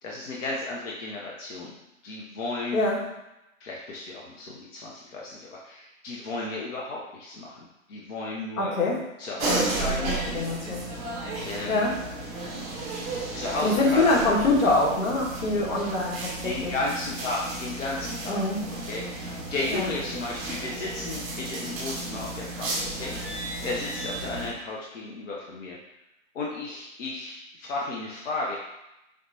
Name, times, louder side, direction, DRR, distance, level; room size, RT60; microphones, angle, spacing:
voice 1, 0.0-1.8 2.0-2.8 3.6-7.6 7.9-8.7 9.2-10.1 11.4-11.9 13.3-14.0 16.4-18.4 18.9-25.8 26.3-28.6, left 2 dB, 65° left, -3 dB, 1.0 m, -34 dB
voice 2, 8.6-9.0 9.5-10.8 11.7-12.0 13.6-16.7 18.3-18.6 19.7-19.9, left 2 dB, 85° left, -3 dB, 1.5 m, -25 dB
sound 1, 9.4-24.5, right 2 dB, 20° right, 0.8 m, -33 dB
4.9 x 3.1 x 2.8 m, 0.90 s
hypercardioid pair, 135°, 40 cm